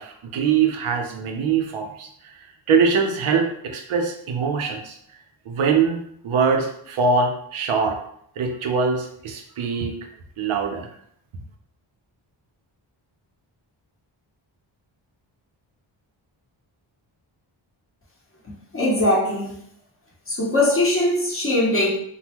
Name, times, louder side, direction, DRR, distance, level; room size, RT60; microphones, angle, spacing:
voice 1, 0.0-2.4 2.7-5.0 5.5-8.0 8.4-10.0 10.4-10.9, right 5 dB, 90° right, 0.7 m, -23 dB
voice 2, 18.7-19.6 20.3-21.9, left 1 dB, 25° left, 1.0 m, -21 dB
3.6 x 2.2 x 2.9 m
wide cardioid pair, 120°, 48 cm